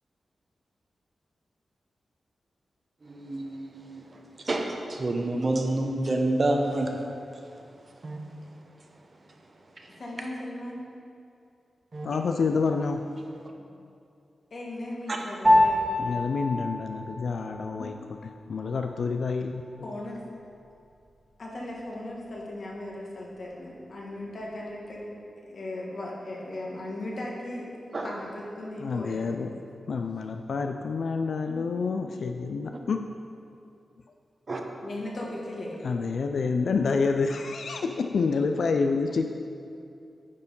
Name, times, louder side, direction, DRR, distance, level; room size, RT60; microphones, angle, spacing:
voice 1, 3.0-7.0 7.5-8.2 9.8-10.0 11.9-12.1 15.1-15.2 27.9-28.1 34.5-34.6, right 2 dB, 40° right, 2 dB, 0.8 m, -29 dB
voice 2, 9.9-10.9 14.5-15.9 19.8-20.2 21.4-25.1 25.4-27.7 28.0-29.5 34.8-35.8, left 1 dB, 55° left, -2 dB, 1.6 m, -37 dB
voice 3, 12.0-13.1 13.7-13.9 16.0-19.9 28.8-29.5 29.9-33.0 35.8-39.3, left 4 dB, 70° left, 5 dB, 0.3 m, -28 dB
Piano, 15.4-25.1, left 1 dB, 20° right, 1.5 m, -30 dB
9.7 x 4.6 x 5.4 m, 2.6 s
wide cardioid pair, 115°, 0 cm